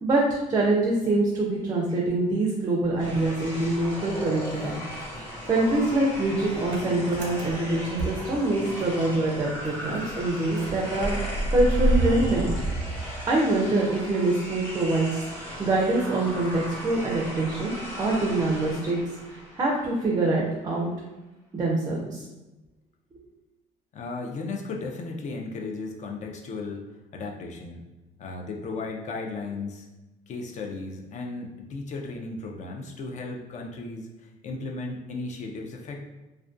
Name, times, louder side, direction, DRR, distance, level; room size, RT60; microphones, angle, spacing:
voice 1, 0.0-4.8 5.3-12.5 13.3-19.0 19.3-20.9 21.5-22.3, right 2 dB, 20° right, -2 dB, 0.4 m, -25 dB
Motor vehicle (road) / Engine starting, 2.8-4.1 4.3-9.0 9.3-9.4 9.7-13.8, right 1 dB, 90° right, 0.5 m, -30 dB
sound 1, 3.0-20.3, equal, 10° left, 0.9 m, -38 dB
voice 2, 23.9-26.9 27.1-27.8 28.2-29.9 30.3-36.0, left 3 dB, 45° left, 1 dB, 0.4 m, -35 dB
2.3 x 2.2 x 2.4 m, 1.1 s
cardioid pair, 110°, 17 cm